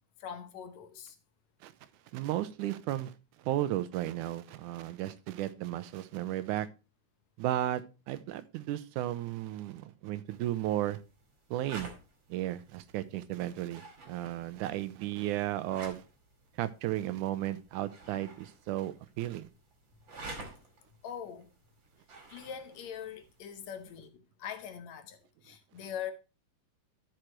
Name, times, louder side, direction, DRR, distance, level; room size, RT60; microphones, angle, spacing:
voice 1, 0.2-1.2 21.0-21.5 22.3-26.1, left 8 dB, 70° left, 2.2 m, -42 dB
voice 2, 2.1-3.1 3.4-6.7 7.4-11.0 11.5-11.9 12.3-16.0 16.6-19.5, right 13 dB, 90° right, 2.2 m, -34 dB
sound 1, 10.3-24.1, right 3 dB, 40° right, 2.8 m, -51 dB
13.5 x 6.4 x 3.1 m
omnidirectional pair, 3.5 m